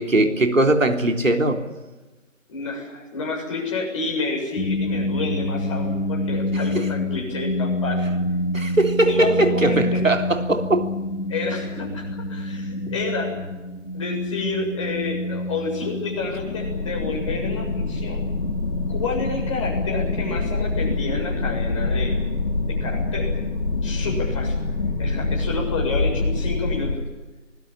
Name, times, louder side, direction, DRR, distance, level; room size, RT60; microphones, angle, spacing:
voice 1, 0.0-1.6 6.5-6.9 8.5-10.9, right 2 dB, 80° right, 5 dB, 3.6 m, -20 dB
voice 2, 2.5-8.1 9.1-10.0 11.3-13.3 13.9-18.3 18.9-22.2 22.7-23.4 23.8-24.6 25.0-27.0, left 3 dB, 25° left, -1 dB, 7.2 m, -29 dB
sound 1, 4.6-20.4, left 1 dB, 90° left, 3.7 m, -28 dB
sound 2, 16.1-27.0, left 3 dB, 50° left, 2.8 m, -25 dB
27.0 x 20.0 x 8.5 m, 1.2 s
figure-of-eight pair, 160°, 39 cm